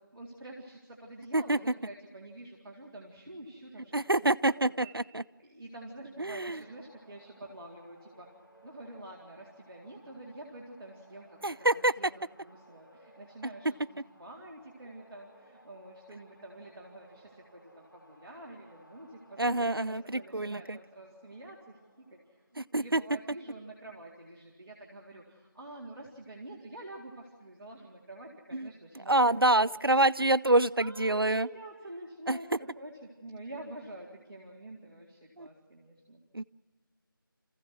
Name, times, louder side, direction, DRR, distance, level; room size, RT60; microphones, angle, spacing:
voice 1, 0.1-5.1 5.4-8.3 8.6-12.1 12.4-30.0 30.8-36.2, right 1 dB, 10° right, -10 dB, 2.2 m, -48 dB
voice 2, 3.9-5.2 6.2-6.6 11.4-11.9 19.4-20.8 22.6-23.0 28.5-28.7 29.1-31.5 32.3-32.4 35.4-35.5 36.3-36.4, right 2 dB, 85° right, 14 dB, 0.6 m, -26 dB
sound 1, 6.5-23.2, right 1 dB, 70° left, 4.1 m, -61 dB
27.5 x 15.5 x 6.2 m, 1.5 s
figure-of-eight pair, 170°, 12 cm